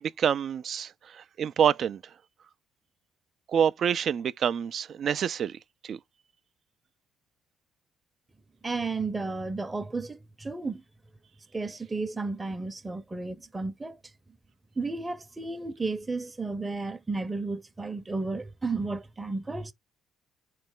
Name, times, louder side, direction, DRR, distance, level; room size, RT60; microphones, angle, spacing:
voice 1, 0.0-0.9 1.4-2.0 3.5-5.6 5.9-6.0, right 8 dB, 55° right, 0.4 m, -26 dB
voice 2, 8.6-10.8 11.5-14.0 14.8-19.7, right 3 dB, 20° right, 0.7 m, -33 dB
4.3 x 3.2 x 3.7 m
supercardioid pair, 60°, 0 cm